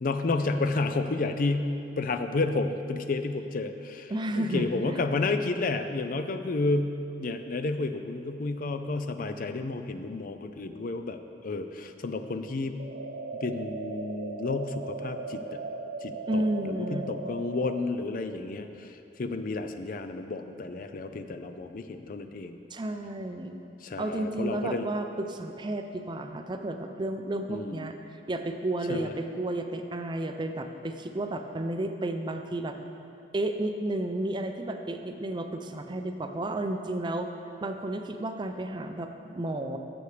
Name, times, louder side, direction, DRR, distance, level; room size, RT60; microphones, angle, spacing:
voice 1, 0.0-12.8 13.4-15.6 16.0-22.6 23.8-24.9 27.5-27.9 28.9-29.1, left 3 dB, 50° left, 8 dB, 0.5 m, -31 dB
voice 2, 4.1-5.0 16.3-17.1 22.7-23.6 24.0-32.8 33.3-37.3 37.6-39.8, right 1 dB, 25° right, 6 dB, 0.5 m, -32 dB
sound 1, 12.8-17.8, right 3 dB, 85° right, 0.6 m, -38 dB
16.0 x 7.0 x 3.3 m, 2.7 s
head